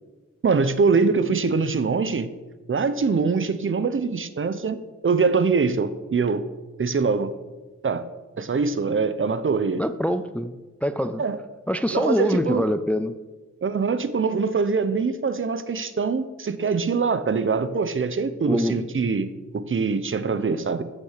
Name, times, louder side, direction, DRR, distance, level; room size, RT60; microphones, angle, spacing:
voice 1, 0.4-2.3 2.7-6.4 6.8-7.3 7.8-8.0 8.4-9.8 11.2-11.4 11.9-12.6 13.6-20.8, right 4 dB, 40° right, 13 dB, 0.8 m, -23 dB
voice 2, 9.8-11.2 11.7-13.2 18.5-18.8, equal, 5° left, 11 dB, 0.4 m, -24 dB
14.0 x 6.6 x 6.6 m, 1.2 s
wide cardioid pair, 135°, 31 cm